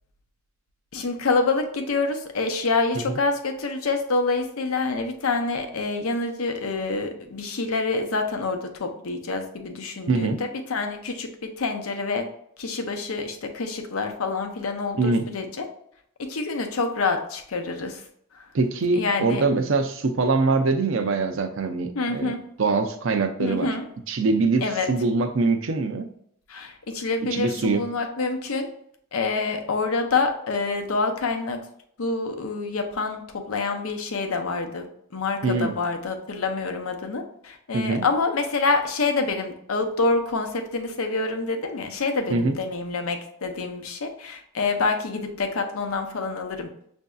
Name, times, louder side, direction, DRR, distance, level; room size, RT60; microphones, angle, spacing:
voice 1, 0.9-12.3 12.6-15.7 16.2-18.0 18.3-18.4 18.9-19.4 21.9-22.4 23.4-23.9 24.6-24.9 26.5-28.7 29.1-31.6 32.0-34.9 35.1-46.7, left 3 dB, 85° left, 5 dB, 0.7 m, -27 dB
voice 2, 10.1-10.4 15.0-15.3 18.5-23.7 24.1-26.1 27.3-27.9 35.4-35.8 37.7-38.0 42.3-42.6, right 3 dB, 65° right, 7 dB, 0.5 m, -23 dB
6.1 x 2.6 x 2.3 m, 0.69 s
head